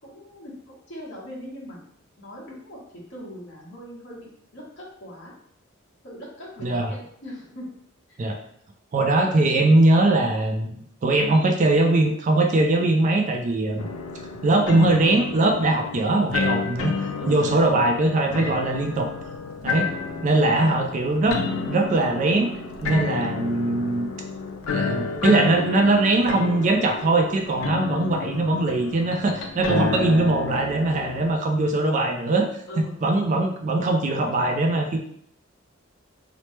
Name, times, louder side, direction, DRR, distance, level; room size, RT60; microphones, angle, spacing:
voice 1, 0.0-1.8 2.2-5.3 6.0-7.7 8.1-8.2 17.2-17.8 18.4-18.5 20.5-20.9 32.7-33.0, left 1 dB, 60° left, -6 dB, 1.2 m, -40 dB
voice 2, 6.6-6.9 8.2-8.4 8.9-13.8 14.4-19.1 19.6-19.9 20.2-21.4 21.7-22.5 22.8-24.1 24.7-32.5 33.0-35.0, right 2 dB, 35° right, 4 dB, 0.3 m, -21 dB
sound 1, 13.8-31.3, left 4 dB, 85° left, 0.4 m, -30 dB
2.9 x 2.0 x 3.1 m, 0.66 s
head